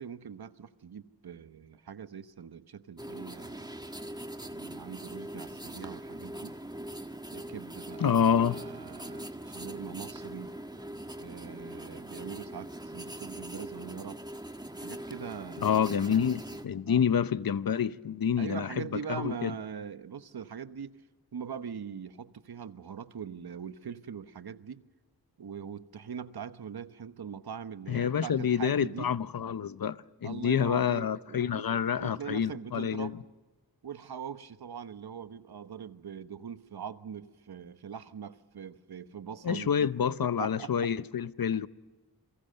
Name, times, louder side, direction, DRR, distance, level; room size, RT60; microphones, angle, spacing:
voice 1, 0.0-3.7 4.4-6.6 7.3-10.5 11.2-14.2 14.8-16.3 16.8-17.0 18.4-21.0 21.3-24.9 25.4-29.1 30.2-31.7 32.0-33.2 33.8-40.9 41.5-41.6, right 7 dB, 75° right, 1.1 m, -42 dB
sound 1, 3.0-16.7, right 1 dB, 10° right, 1.5 m, -42 dB
voice 2, 8.0-8.6 15.6-18.7 19.1-19.5 27.9-33.1 39.4-41.7, left 8 dB, 65° left, 0.8 m, -28 dB
29.0 x 22.5 x 6.6 m
wide cardioid pair, 95°, 38 cm